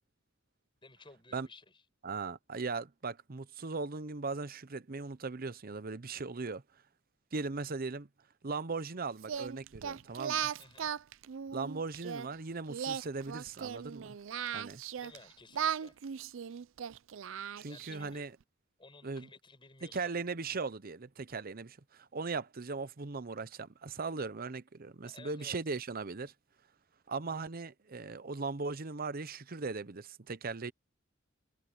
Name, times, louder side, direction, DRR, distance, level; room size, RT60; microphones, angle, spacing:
voice 1, 0.8-1.8 10.6-10.9 15.0-16.0 17.7-18.3 18.8-20.1 25.0-25.6, left 3 dB, 25° left, 6.0 m, -55 dB
voice 2, 2.0-6.6 7.3-8.1 8.4-10.5 11.5-14.2 14.5-14.8 17.5-18.3 19.0-19.3 19.9-26.3 27.1-30.7, right 4 dB, 50° right, 0.8 m, -38 dB
Singing, 9.2-12.3 12.7-15.2 15.5-18.1, right 8 dB, 75° right, 0.4 m, -37 dB
head